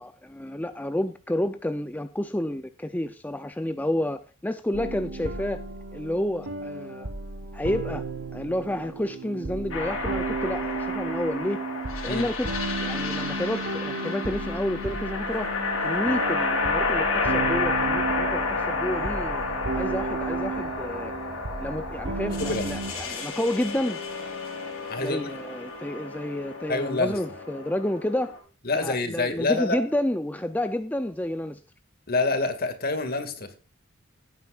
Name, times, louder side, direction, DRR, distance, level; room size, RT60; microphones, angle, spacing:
voice 1, 0.0-5.6 5.9-7.1 7.5-8.0 8.3-11.7 12.0-12.5 12.8-15.5 15.8-19.4 19.7-21.1 21.6-24.0 25.0-28.4 28.7-31.6, left 1 dB, 10° left, 0.5 m, -30 dB
sound 1, 4.7-22.9, right 3 dB, 65° right, 1.3 m, -34 dB
sound 2, 9.7-28.4, left 3 dB, 85° left, 5.0 m, -30 dB
sound 3, 17.6-23.1, right 1 dB, 30° right, 2.4 m, -45 dB
voice 2, 24.9-25.3 26.7-27.2 28.7-29.8 32.1-33.5, left 3 dB, 45° left, 2.1 m, -27 dB
17.5 x 9.5 x 2.5 m
head